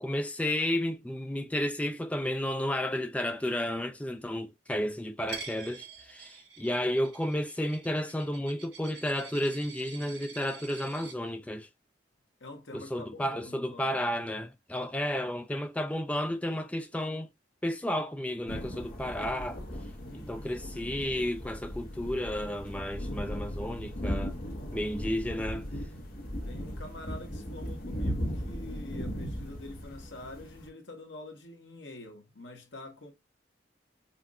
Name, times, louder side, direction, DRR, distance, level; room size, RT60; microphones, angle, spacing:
voice 1, 0.0-11.7 12.7-17.3 17.6-19.6 20.1-24.3 24.7-25.6, left 1 dB, 5° left, 0.4 m, -32 dB
Coin (dropping), 5.3-11.1, right 6 dB, 65° right, 2.9 m, -47 dB
voice 2, 12.4-14.0 20.0-21.0 26.4-33.1, left 2 dB, 80° left, 1.3 m, -46 dB
sound 1, 18.5-30.7, equal, 55° left, 1.3 m, -37 dB
5.7 x 2.6 x 2.2 m
head